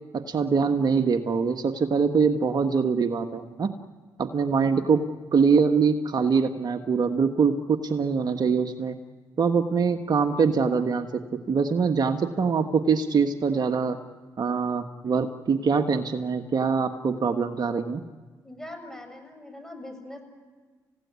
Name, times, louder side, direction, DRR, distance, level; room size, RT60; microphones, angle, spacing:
voice 1, 0.1-3.7 4.2-5.1 5.3-9.0 9.4-14.0 14.4-18.0, right 5 dB, 50° right, 6 dB, 1.4 m, -23 dB
voice 2, 18.4-20.2, left 1 dB, 5° left, 6 dB, 6.8 m, -41 dB
28.5 x 16.5 x 9.6 m, 1.4 s
supercardioid pair, 55°, 9 cm